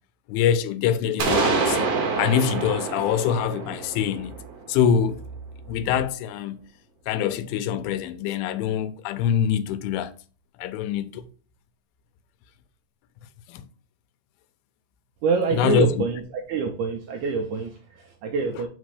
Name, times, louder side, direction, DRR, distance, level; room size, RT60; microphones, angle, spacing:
voice 1, 0.3-1.9 2.2-4.4 4.7-5.2 5.7-6.6 7.1-10.1 10.6-11.3 13.5-13.6 15.5-15.9, left 8 dB, 90° left, 2.5 m, -24 dB
sound 1, 1.2-5.0, right 4 dB, 65° right, 1.7 m, -26 dB
voice 2, 15.2-16.2 16.5-18.7, right 4 dB, 85° right, 1.7 m, -26 dB
5.1 x 4.2 x 4.8 m
omnidirectional pair, 4.3 m